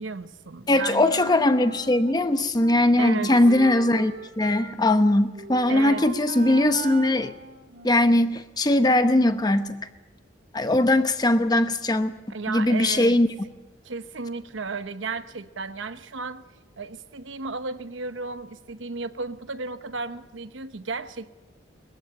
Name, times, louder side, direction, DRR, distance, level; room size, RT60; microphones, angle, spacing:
voice 1, 0.0-1.1 3.0-3.3 5.7-6.0 12.3-13.2 13.8-16.4 16.8-21.3, right 4 dB, 75° right, 11 dB, 0.9 m, -34 dB
voice 2, 0.7-7.3 7.8-9.8 10.5-12.1 12.5-13.3, left 1 dB, 20° left, 10 dB, 0.9 m, -20 dB
Wind instrument woodwind instrument, 1.1-8.3, right 4 dB, 50° right, 2.9 m, -40 dB
21.0 x 14.5 x 8.7 m, 1.1 s
head